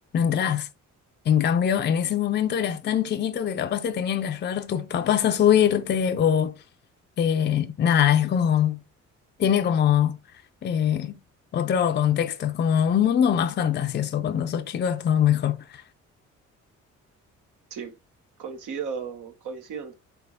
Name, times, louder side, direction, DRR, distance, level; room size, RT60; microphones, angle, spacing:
voice 1, 0.1-0.7 1.3-6.5 7.2-8.8 9.4-10.2 10.6-11.1 11.5-15.8, left 9 dB, 35° left, 0.5 m, -23 dB
voice 2, 18.4-19.9, right 6 dB, 80° right, 1.0 m, -35 dB
3.8 x 3.5 x 3.7 m
cardioid pair, 90°, 30 cm